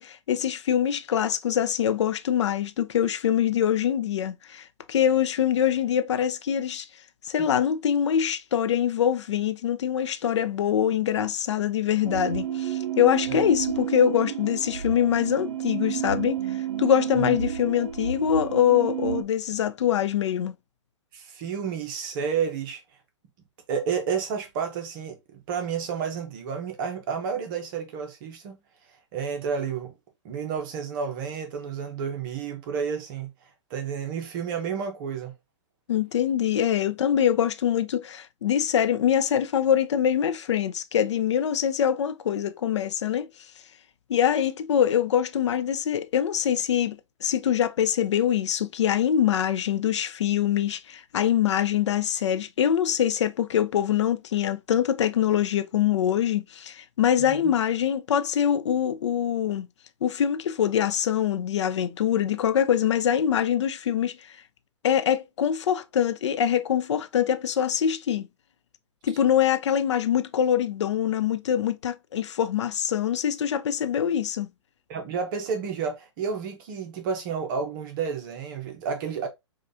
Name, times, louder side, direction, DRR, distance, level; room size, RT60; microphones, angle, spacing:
voice 1, 0.0-6.9 7.2-16.4 16.8-20.5 35.9-43.3 44.1-59.7 60.0-64.2 64.8-68.3 69.0-74.5, left 9 dB, 65° left, 0.6 m, -24 dB
sound 1, 12.0-19.2, right 9 dB, 85° right, 0.7 m, -31 dB
voice 2, 21.1-22.8 23.7-25.2 25.5-28.6 29.1-29.9 30.2-33.3 33.7-35.3 57.3-57.5 74.9-79.3, right 6 dB, 45° right, 0.9 m, -30 dB
4.8 x 2.4 x 2.7 m
hypercardioid pair, 120°, 16 cm